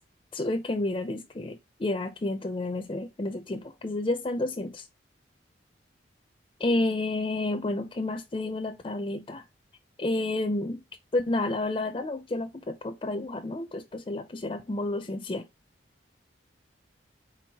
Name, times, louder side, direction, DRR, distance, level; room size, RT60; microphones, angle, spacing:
voice 1, 0.3-4.9 6.6-9.4 10.0-10.8 11.1-15.5, left 2 dB, 25° left, 0.4 m, -30 dB
4.6 x 3.9 x 2.8 m
head